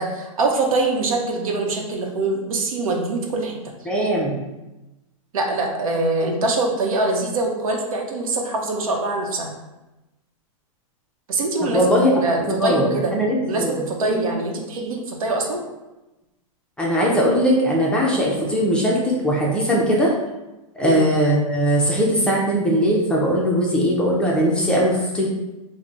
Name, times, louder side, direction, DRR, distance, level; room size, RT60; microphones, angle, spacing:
voice 1, 0.0-3.6 5.3-9.6 11.3-13.1 13.4-15.6 20.8-21.1, right 2 dB, 80° right, 1 dB, 0.8 m, -24 dB
voice 2, 3.9-4.4 11.7-12.1 12.4-13.7 14.0-14.2 16.8-20.1 20.8-25.3, equal, 5° left, -4 dB, 0.4 m, -20 dB
3.3 x 2.1 x 3.8 m, 1.0 s
hypercardioid pair, 145°, 18 cm